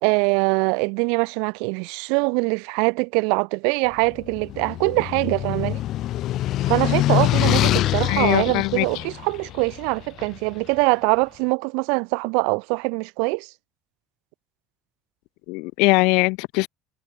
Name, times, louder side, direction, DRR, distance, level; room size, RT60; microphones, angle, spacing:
voice 1, 0.0-5.8 6.7-13.5, right 36 dB, 85° right, 3.1 m, -23 dB
sound 1, 4.1-10.4, left 14 dB, 60° left, 6.7 m, -24 dB
voice 2, 8.1-9.0 15.5-16.7, left 28 dB, 80° left, 1.1 m, -21 dB
cardioid pair, 115°, 0 cm